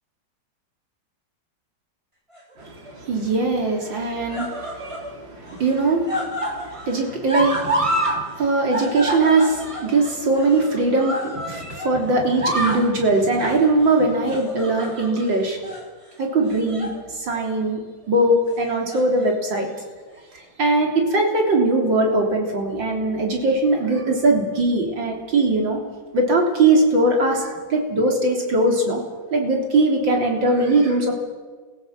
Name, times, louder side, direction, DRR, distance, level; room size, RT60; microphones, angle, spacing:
sound 1, 2.3-2.9 3.8-5.1 5.4-8.2 8.5-11.9 12.2-12.9 13.3-13.6 14.2-15.3 15.6-15.8 16.5-17.0 17.3-17.5 18.6-19.3 20.2-20.3, right 1 dB, 15° right, 3.2 m, -28 dB
voice 1, 2.6-15.6 16.2-19.7 20.6-25.8 26.1-29.0 29.3-31.1, right 2 dB, 70° right, 1 dB, 4.1 m, -21 dB
24.0 x 15.5 x 7.7 m, 1.4 s
omnidirectional pair, 2.1 m